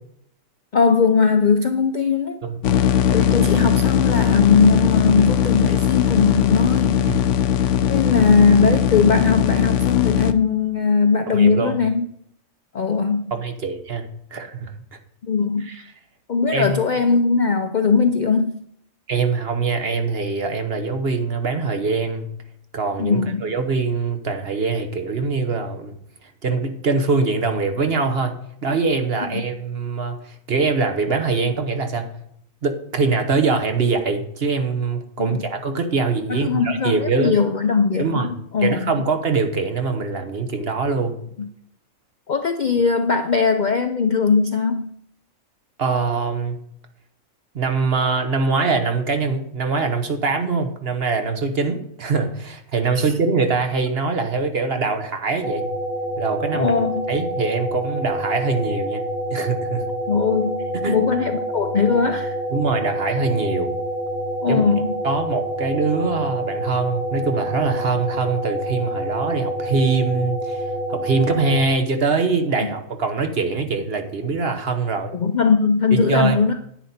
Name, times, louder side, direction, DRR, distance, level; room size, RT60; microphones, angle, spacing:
voice 1, 0.7-2.4 3.1-7.1 7.7-12.1 12.7-13.3 15.2-15.7 16.3-18.6 23.0-23.4 29.3-29.4 35.2-35.4 36.3-38.9 41.4-41.5 42.3-44.9 52.9-53.1 56.5-57.1 60.1-62.4 64.4-64.9 75.1-76.5, left 5 dB, 55° left, 8 dB, 0.5 m, -19 dB
sound 1, 2.6-10.3, left 9 dB, 70° left, 0.9 m, -19 dB
voice 2, 11.3-11.8 13.3-14.1 14.3-14.7 15.6-15.8 16.5-16.8 19.1-22.3 22.7-25.9 26.4-28.3 28.6-32.1 32.6-37.3 38.0-38.3 38.6-41.1 45.8-46.5 47.5-55.7 56.2-56.7 57.1-59.0 59.3-59.8 60.7-61.0 62.5-63.7 64.5-64.6 65.0-75.1 75.9-76.4, right 4 dB, 50° right, 6 dB, 1.3 m, -23 dB
sound 2, 55.4-71.6, right 1 dB, 85° right, 2.0 m, -27 dB
10.5 x 9.7 x 4.3 m, 0.71 s
omnidirectional pair, 1.4 m